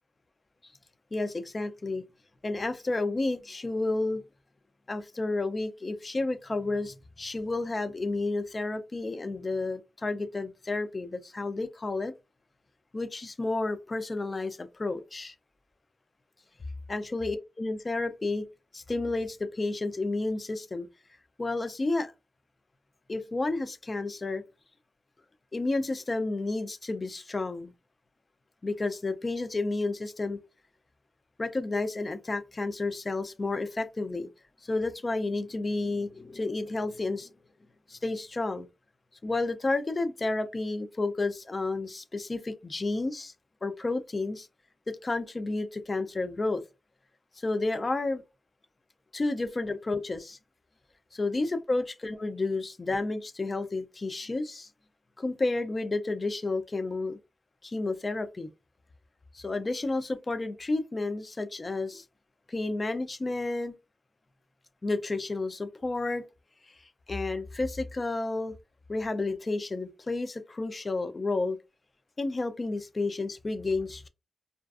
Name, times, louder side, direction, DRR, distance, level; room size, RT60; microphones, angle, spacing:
voice 1, 1.1-2.0 2.4-4.2 4.9-12.1 12.9-15.3 16.9-18.5 18.7-20.9 21.4-22.1 23.1-24.4 25.5-27.7 28.6-30.4 31.4-34.3 34.6-37.3 37.9-38.7 39.2-43.3 43.6-44.5 44.9-46.6 47.4-48.2 49.1-50.4 51.1-54.7 55.2-57.2 57.6-58.5 59.3-62.0 62.5-63.7 64.8-66.2 67.1-68.5 68.9-71.6 72.2-74.1, left 2 dB, 30° left, 0.4 m, -31 dB
2.4 x 2.3 x 2.3 m
wide cardioid pair, 115°, 0 cm